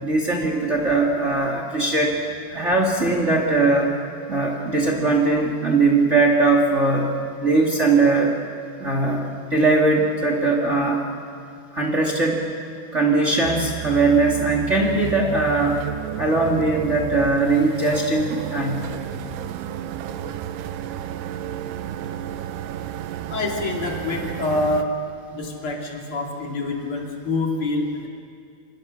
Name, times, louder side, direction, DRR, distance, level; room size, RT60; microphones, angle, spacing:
voice 1, 0.0-2.1 2.5-3.9 4.3-7.1 7.4-8.4 8.8-9.2 9.5-11.0 11.7-12.4 12.9-15.8 16.2-18.9, right 3 dB, 30° right, -1 dB, 1.4 m, -20 dB
sound 1, 13.4-24.8, right 11 dB, 75° right, 2.5 m, -32 dB
voice 2, 23.3-24.9 25.3-28.1, left 2 dB, 30° left, 0 dB, 3.0 m, -26 dB
27.5 x 26.5 x 6.6 m, 2.4 s
omnidirectional pair, 5.5 m